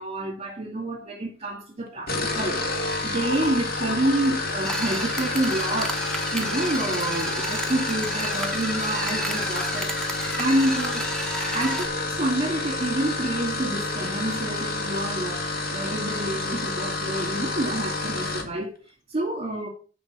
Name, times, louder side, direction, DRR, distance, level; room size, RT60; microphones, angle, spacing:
voice 1, 0.0-11.1 11.5-18.7 19.1-19.7, right 1 dB, 30° right, 2.0 m, -28 dB
sound 1, 2.0-18.5, left 2 dB, 50° left, 1.8 m, -29 dB
sound 2, 4.6-11.9, right 1 dB, 5° left, 1.3 m, -31 dB
9.0 x 4.9 x 6.5 m
head